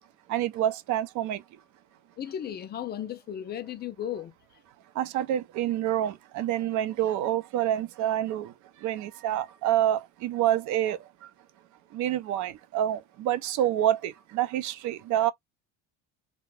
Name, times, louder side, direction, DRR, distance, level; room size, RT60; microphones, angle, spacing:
voice 1, 0.3-1.4 5.0-8.5 8.8-11.0 11.9-15.3, right 12 dB, 55° right, 0.6 m, -27 dB
voice 2, 2.2-4.6, left 10 dB, 30° left, 0.4 m, -35 dB
2.5 x 2.2 x 3.2 m
supercardioid pair, 95°, 36 cm